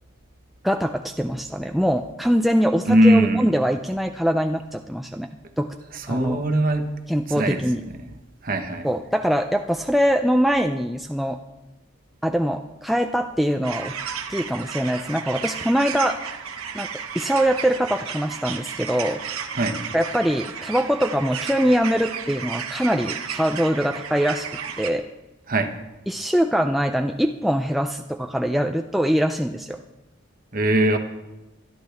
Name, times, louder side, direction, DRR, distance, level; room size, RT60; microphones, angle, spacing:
voice 1, 0.6-5.3 5.6-5.7 6.1-6.4 7.1-7.8 8.8-11.4 12.2-13.9 14.3-16.2 16.7-16.9 17.1-19.2 19.9-24.5 24.8-25.0 26.1-29.8, equal, ahead, 4 dB, 0.4 m, -23 dB
voice 2, 2.9-3.4 5.9-6.9 7.3-7.6 8.4-8.9 19.5-19.8 25.5-25.7 30.5-31.0, right 1 dB, 40° right, 6 dB, 1.2 m, -20 dB
sound 1, 13.6-24.9, right 7 dB, 90° right, 1.2 m, -33 dB
25.0 x 10.5 x 3.5 m, 1.0 s
head